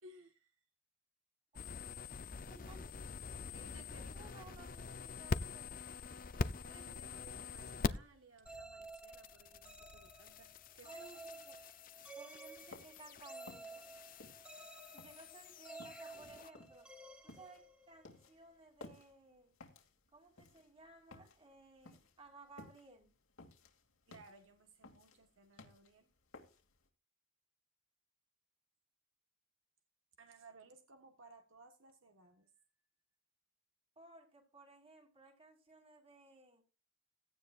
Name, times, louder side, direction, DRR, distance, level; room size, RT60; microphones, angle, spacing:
voice 1, 0.0-0.5 3.5-5.0 6.6-11.1 14.8-14.9 24.1-26.1 30.2-32.6, right 3 dB, 75° right, 1.4 m, -61 dB
sound 1, 1.5-8.2 8.4-16.5, left 4 dB, 40° left, 0.5 m, -45 dB
voice 2, 2.5-2.9 4.0-5.9 6.6-7.0 10.8-11.6 12.2-13.9 14.9-16.9 17.2-19.5 20.1-23.1 33.9-36.6, right 3 dB, 25° right, 3.2 m, -59 dB
sound 2, 8.5-18.3, right 3 dB, 5° right, 1.0 m, -54 dB
sound 3, 12.5-26.9, left 2 dB, 85° left, 2.6 m, -58 dB
16.5 x 12.5 x 2.5 m
head